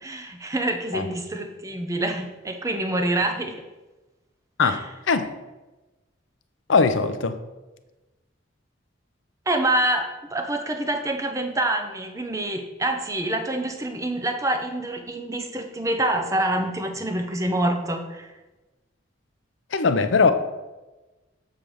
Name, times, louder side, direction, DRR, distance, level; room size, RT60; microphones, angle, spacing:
voice 1, 0.0-3.6 4.6-4.8 9.5-18.3, right 1 dB, 15° right, 5 dB, 0.7 m, -26 dB
voice 2, 4.6-5.3 6.7-7.4 19.7-20.3, left 4 dB, 75° left, 10 dB, 0.6 m, -20 dB
7.5 x 3.4 x 6.3 m, 1.1 s
head